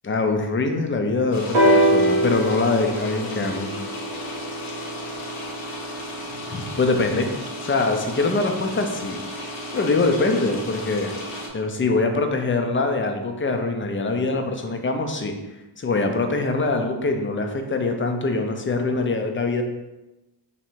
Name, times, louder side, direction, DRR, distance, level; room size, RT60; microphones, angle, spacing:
voice 1, 0.0-3.7 6.5-7.3 7.6-9.2 9.7-11.1 11.5-15.4 15.8-19.6, left 3 dB, 25° left, 5 dB, 0.5 m, -23 dB
sound 1, 1.3-11.5, equal, 70° left, 1.0 m, -34 dB
sound 2, 1.5-5.4 6.3-6.4, right 1 dB, 90° right, 1.5 m, -22 dB
3.1 x 2.7 x 4.5 m, 1.0 s
cardioid pair, 75°, 50 cm